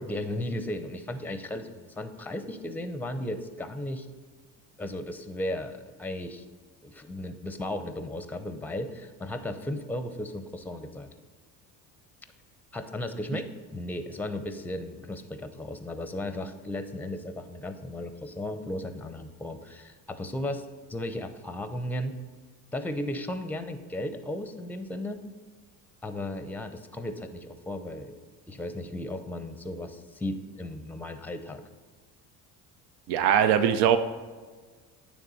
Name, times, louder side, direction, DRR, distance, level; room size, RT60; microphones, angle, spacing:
voice 1, 0.0-4.1 4.8-6.5 6.8-11.1 12.7-20.6 20.9-22.2 22.7-25.2 26.0-28.2 28.5-31.6, left 1 dB, 5° left, 9 dB, 0.6 m, -35 dB
voice 2, 33.1-34.0, right 9 dB, 70° right, 9 dB, 0.6 m, -21 dB
9.3 x 3.4 x 5.5 m, 1.4 s
supercardioid pair, 75°, 44 cm